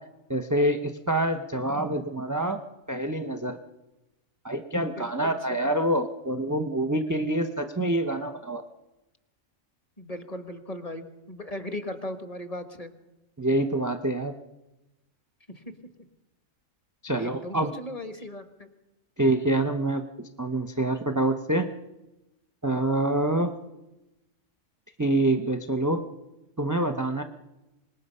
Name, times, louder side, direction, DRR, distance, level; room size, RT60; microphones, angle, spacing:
voice 1, 0.3-2.6 2.9-3.6 4.4-8.6 13.4-14.3 17.0-17.7 19.2-21.7 22.6-23.5 25.0-26.0 26.6-27.2, right 1 dB, 15° right, 7 dB, 0.7 m, -26 dB
voice 2, 4.8-5.4 5.6-5.7 10.0-12.9 15.5-15.6 17.2-18.7, left 1 dB, 25° left, 7 dB, 1.6 m, -38 dB
25.5 x 20.0 x 5.6 m, 1.0 s
omnidirectional pair, 1.5 m